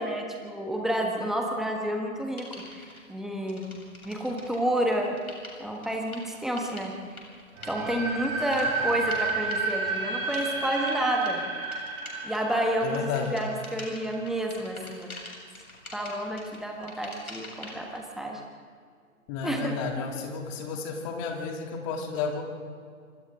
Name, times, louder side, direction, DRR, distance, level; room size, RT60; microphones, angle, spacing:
voice 1, 0.0-3.7 4.0-5.2 5.6-7.0 7.6-11.4 12.2-15.1 15.9-18.4 19.4-19.8, right 1 dB, ahead, 1 dB, 1.3 m, -30 dB
sound 1, 2.4-3.0 3.5-18.0, left 1 dB, 80° left, 7.5 m, -46 dB
sound 2, 7.6-14.4, right 3 dB, 25° right, 5.9 m, -31 dB
voice 2, 12.8-13.3 19.3-22.4, left 5 dB, 20° left, 2 dB, 2.8 m, -32 dB
26.5 x 26.0 x 3.8 m, 2.1 s
figure-of-eight pair, 135°, 43 cm